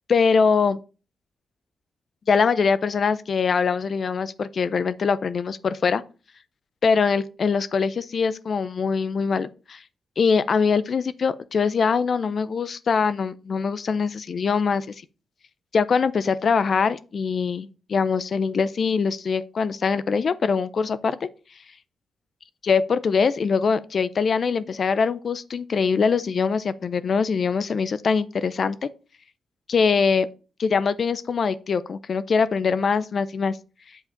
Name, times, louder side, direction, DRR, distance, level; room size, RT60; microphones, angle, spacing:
voice 1, 0.1-0.8 2.3-6.0 6.8-9.8 10.2-14.9 15.7-21.3 22.6-28.9 29.7-30.3 30.6-33.6, left 5 dB, 40° left, 0.5 m, -23 dB
8.0 x 4.9 x 5.1 m
wide cardioid pair, 175°, 0 cm